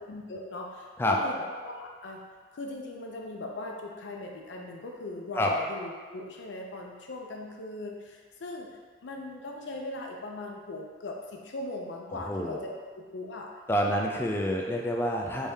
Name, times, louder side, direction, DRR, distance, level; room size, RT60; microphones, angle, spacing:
voice 1, 0.0-2.2 2.5-12.6 13.0-13.5, left 2 dB, 85° left, 1 dB, 0.5 m, -39 dB
voice 2, 12.1-12.6 13.7-15.5, equal, 15° left, 0 dB, 0.3 m, -28 dB
3.4 x 2.7 x 3.4 m, 1.6 s
head